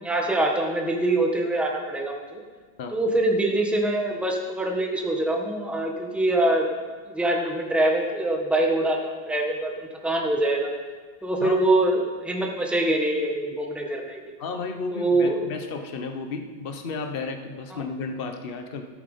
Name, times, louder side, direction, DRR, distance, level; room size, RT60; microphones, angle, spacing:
voice 1, 0.0-2.4 2.9-6.7 7.0-10.7 11.2-14.3 14.9-15.4 17.7-17.8, right 1 dB, ahead, 0 dB, 1.1 m, -24 dB
voice 2, 14.4-18.8, left 4 dB, 40° left, 5 dB, 0.9 m, -33 dB
13.5 x 8.6 x 5.6 m, 1.5 s
omnidirectional pair, 2.2 m